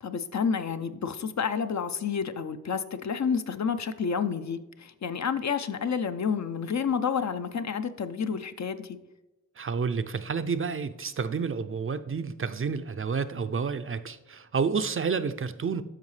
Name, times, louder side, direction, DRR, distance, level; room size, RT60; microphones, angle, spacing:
voice 1, 0.0-9.0, left 6 dB, 55° left, 10 dB, 0.5 m, -30 dB
voice 2, 9.6-15.8, right 5 dB, 40° right, 11 dB, 0.4 m, -30 dB
12.5 x 4.7 x 3.2 m, 1.0 s
wide cardioid pair, 65°, 33 cm